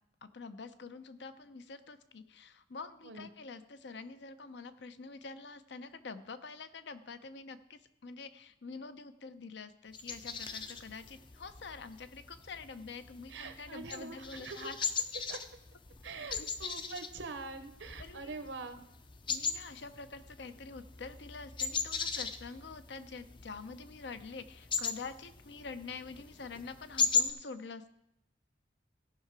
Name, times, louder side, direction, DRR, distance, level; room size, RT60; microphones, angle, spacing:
voice 1, 0.2-14.8 16.0-16.5 18.0-18.4 19.3-27.9, left 4 dB, 70° left, 11 dB, 0.6 m, -46 dB
sound 1, 9.9-27.3, left 5 dB, 25° left, 0.5 m, -38 dB
voice 2, 13.3-14.7 15.3-15.4 16.0-18.8, right 3 dB, 85° right, 9 dB, 1.0 m, -44 dB
16.0 x 5.8 x 4.7 m, 0.81 s
head